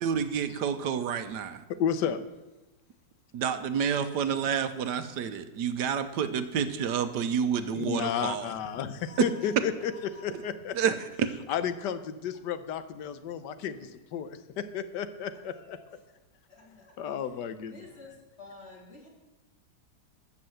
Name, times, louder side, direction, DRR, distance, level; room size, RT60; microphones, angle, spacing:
voice 1, 0.0-1.6 3.3-8.5 10.7-10.9, right 7 dB, 85° right, 10 dB, 1.5 m, -29 dB
voice 2, 1.8-2.2 7.7-10.7 11.5-14.3 14.7-15.8 16.7-17.8, left 8 dB, 90° left, 12 dB, 1.4 m, -32 dB
voice 3, 9.0-10.6 15.4-15.9 16.5-16.9 17.2-19.1, left 3 dB, 40° left, -1 dB, 3.1 m, -52 dB
13.5 x 6.6 x 7.9 m, 1.1 s
omnidirectional pair, 1.8 m